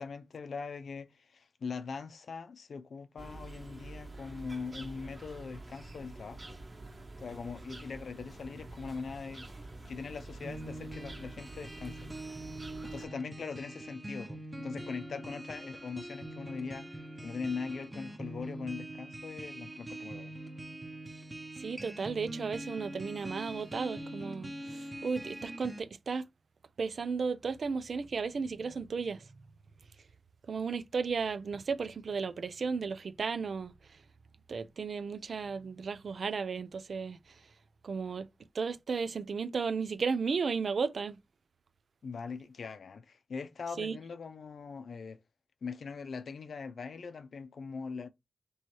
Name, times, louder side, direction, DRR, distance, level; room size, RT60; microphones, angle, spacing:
voice 1, 0.0-6.6 7.2-9.5 9.9-12.1 12.8-20.3 42.0-45.2 45.6-48.1, left 5 dB, 80° left, 0.5 m, -41 dB
sound 1, 3.2-13.1, right 2 dB, 40° right, 1.2 m, -47 dB
sound 2, 10.4-25.8, right 1 dB, 25° right, 0.9 m, -43 dB
voice 2, 21.6-26.2 26.8-29.3 30.5-34.0 34.5-37.4 37.8-38.3 38.5-41.2 43.8-44.0, right 5 dB, 75° right, 0.4 m, -34 dB
3.0 x 3.0 x 4.6 m
cardioid pair, 55°, 0 cm